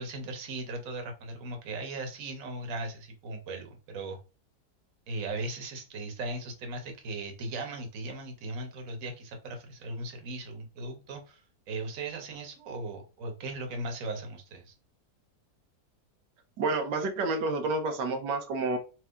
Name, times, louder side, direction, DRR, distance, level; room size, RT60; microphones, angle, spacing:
voice 1, 0.0-4.2 5.1-14.7, right 2 dB, 55° right, 4 dB, 1.4 m, -38 dB
voice 2, 16.6-18.8, right 3 dB, 90° right, 5 dB, 1.5 m, -29 dB
4.6 x 2.8 x 3.5 m, 0.32 s
omnidirectional pair, 1.8 m